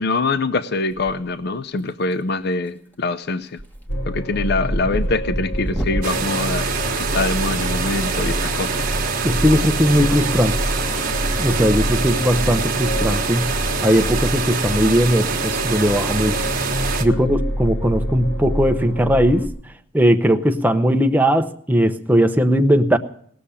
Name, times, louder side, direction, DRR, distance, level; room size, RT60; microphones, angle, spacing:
voice 1, 0.0-3.6 4.1-8.7, left 3 dB, 50° left, 0.6 m, -24 dB
sound 1, 0.9-1.5 1.8-2.3 2.7-2.9 3.3-7.7 9.0-9.2 10.4-11.2 11.5-11.7 12.3-12.4 12.6-12.7 13.1-13.3 13.5-13.6 15.2-15.5, right 1 dB, 10° left, 1.4 m, -31 dB
sound 2, 3.9-19.5, equal, 80° left, 2.4 m, -27 dB
sound 3, 6.0-17.0, right 5 dB, 45° right, 1.4 m, -25 dB
voice 2, 9.2-10.6 11.4-13.5 13.8-16.4 17.0-19.5 19.9-23.0, equal, 10° right, 0.7 m, -18 dB
18.5 x 6.9 x 10.0 m
head